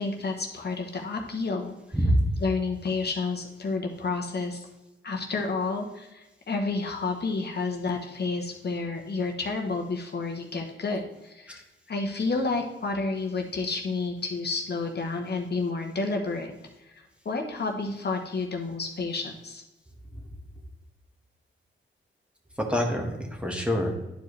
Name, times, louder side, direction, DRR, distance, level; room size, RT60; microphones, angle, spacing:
voice 1, 0.0-1.7 2.4-4.6 5.0-16.5 16.9-19.6, left 3 dB, 50° left, 2 dB, 0.9 m, -30 dB
voice 2, 1.9-2.2 11.5-11.6 22.6-23.9, equal, 5° right, 1 dB, 1.4 m, -25 dB
10.5 x 4.6 x 3.1 m, 0.98 s
cardioid pair, 85°, 21 cm